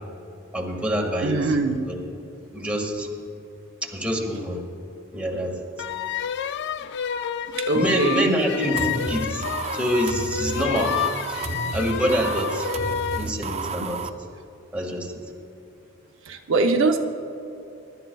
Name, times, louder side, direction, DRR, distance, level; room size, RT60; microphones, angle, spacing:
voice 1, 0.5-1.6 1.9-2.0 2.5-3.1 3.8-4.6 5.1-5.6 7.7-9.5 9.7-11.0 11.3-12.7 13.2-14.1 14.7-15.1, equal, 5° right, -1 dB, 1.8 m, -26 dB
voice 2, 1.2-1.8 7.5-8.3 16.3-17.0, right 3 dB, 65° right, 4 dB, 0.7 m, -22 dB
sound 1, 5.8-13.3, left 9 dB, 55° left, 0.4 m, -29 dB
sound 2, 8.8-14.1, right 4 dB, 30° right, 0.4 m, -32 dB
22.5 x 12.0 x 2.3 m, 2.9 s
head